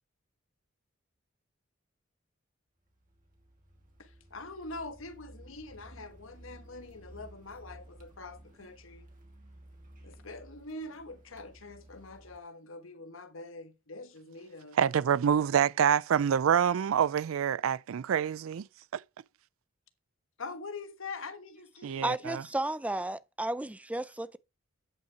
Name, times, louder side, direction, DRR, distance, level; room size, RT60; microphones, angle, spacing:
Car, 2.9-12.4, right 1 dB, 40° right, 2.4 m, -54 dB
voice 1, 4.0-9.1 10.0-14.8 20.4-22.1, left 3 dB, 75° left, 1.2 m, -44 dB
voice 2, 14.8-18.7 18.9-19.0 21.8-22.4, right 8 dB, 80° right, 0.4 m, -26 dB
voice 3, 22.0-24.4, right 1 dB, 5° right, 0.4 m, -33 dB
9.1 x 5.7 x 4.6 m
head